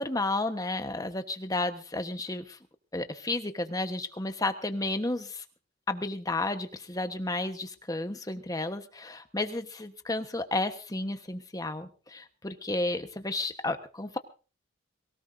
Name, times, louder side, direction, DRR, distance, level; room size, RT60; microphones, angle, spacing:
voice 1, 0.0-2.6 2.9-5.4 5.9-14.2, left 2 dB, 20° left, 8 dB, 1.2 m, -32 dB
23.5 x 17.5 x 2.7 m, 0.35 s
head